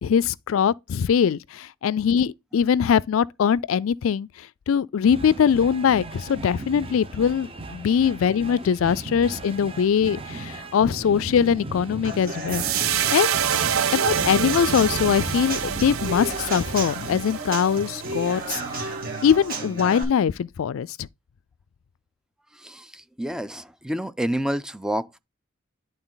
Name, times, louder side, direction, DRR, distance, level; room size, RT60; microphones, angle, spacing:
voice 1, 0.0-13.4 13.9-18.9 19.2-21.1, left 7 dB, 75° left, 0.4 m, -22 dB
sound 1, 5.0-17.2, right 2 dB, 25° right, 0.9 m, -37 dB
Human voice / Acoustic guitar / Drum, 12.0-20.0, right 2 dB, 45° right, 2.5 m, -34 dB
sound 2, 12.5-18.9, right 9 dB, 90° right, 0.6 m, -27 dB
voice 2, 22.5-25.2, equal, 5° right, 0.4 m, -29 dB
11.0 x 3.9 x 3.9 m
head